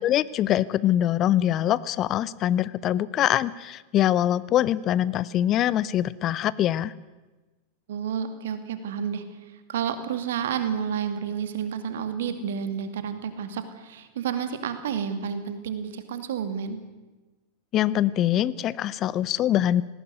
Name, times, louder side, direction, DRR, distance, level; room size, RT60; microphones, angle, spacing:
voice 1, 0.0-6.9 17.7-19.8, left 12 dB, 35° left, 19 dB, 0.6 m, -23 dB
voice 2, 7.9-9.2 9.7-16.8, right 7 dB, 60° right, 10 dB, 2.3 m, -30 dB
19.5 x 16.5 x 9.6 m, 1.2 s
figure-of-eight pair, 90°, 0 cm